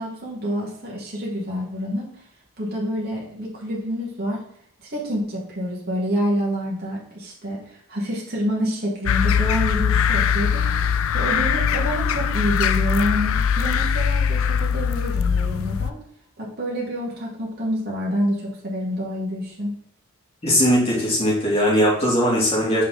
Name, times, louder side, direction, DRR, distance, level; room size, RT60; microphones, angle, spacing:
voice 1, 0.0-2.1 2.6-4.4 4.8-10.9 11.1-16.0 16.4-19.7, equal, 45° right, -3 dB, 1.6 m, -27 dB
sound 1, 9.1-15.9, left 7 dB, 70° left, 0.4 m, -21 dB
voice 2, 20.4-22.8, equal, 30° left, -6 dB, 2.7 m, -19 dB
5.8 x 4.4 x 3.9 m, 0.65 s
head